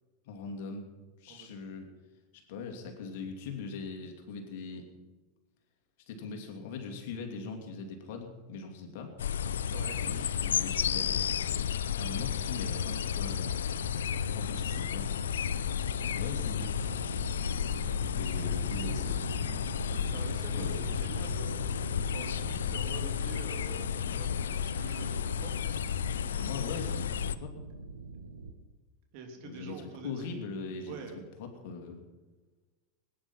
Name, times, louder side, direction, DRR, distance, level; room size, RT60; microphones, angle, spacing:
voice 1, 0.3-0.9 1.2-1.9 2.5-4.9 6.1-9.1 10.0-11.1 11.9-13.5 14.3-15.1 16.1-16.7 18.2-19.2 20.5-20.8 26.3-27.6 29.4-32.0, left 4 dB, 65° left, 3 dB, 2.8 m, -41 dB
sound 1, 9.2-27.3, left 8 dB, 80° left, 0.5 m, -32 dB
voice 2, 9.7-10.0 18.4-18.5 20.1-20.7 21.0-21.5 22.1-25.7 29.1-30.3 30.9-31.1, right 5 dB, 60° right, 3 dB, 3.1 m, -46 dB
sound 2, 13.4-28.5, right 4 dB, 90° right, 1.4 m, -43 dB
19.0 x 10.0 x 5.7 m, 1.3 s
hypercardioid pair, 90°, 0 cm